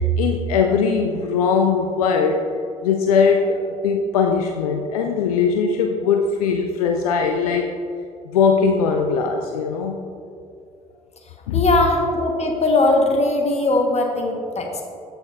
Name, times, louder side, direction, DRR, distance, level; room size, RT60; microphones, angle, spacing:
voice 1, 0.0-2.4 2.8-7.7 8.3-10.0 11.5-11.6, left 5 dB, 75° left, 3 dB, 0.4 m, -20 dB
voice 2, 11.5-14.8, left 2 dB, 35° left, 2 dB, 1.3 m, -19 dB
13.5 x 4.6 x 2.5 m, 2.4 s
figure-of-eight pair, 50°, 19 cm